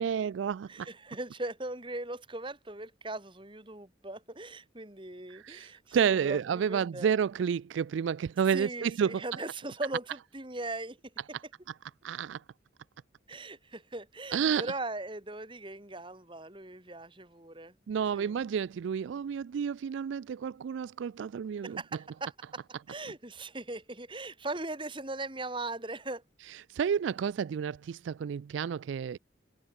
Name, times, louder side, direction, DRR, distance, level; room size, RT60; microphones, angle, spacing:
voice 1, 0.0-0.9 5.3-9.2 12.0-12.4 14.3-14.7 17.9-21.8 26.7-29.2, right 7 dB, 75° right, 0.3 m, -30 dB
voice 2, 0.7-7.1 8.5-11.1 13.3-17.7 18.1-18.4 21.6-22.6 22.9-26.2, right 2 dB, 25° right, 2.7 m, -39 dB
head